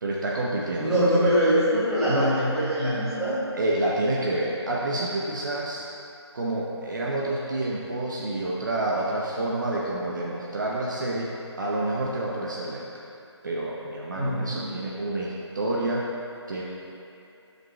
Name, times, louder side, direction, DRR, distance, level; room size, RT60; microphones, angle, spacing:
voice 1, 0.0-1.3 2.0-2.3 3.5-5.9 6.3-11.3 11.6-12.9 13.4-16.0 16.5-16.6, right 2 dB, 45° right, -4 dB, 0.8 m, -28 dB
voice 2, 0.8-3.4 14.2-14.7, equal, 5° right, -14 dB, 1.5 m, -23 dB
10.5 x 5.3 x 3.1 m, 2.7 s
figure-of-eight pair, 160°, 15 cm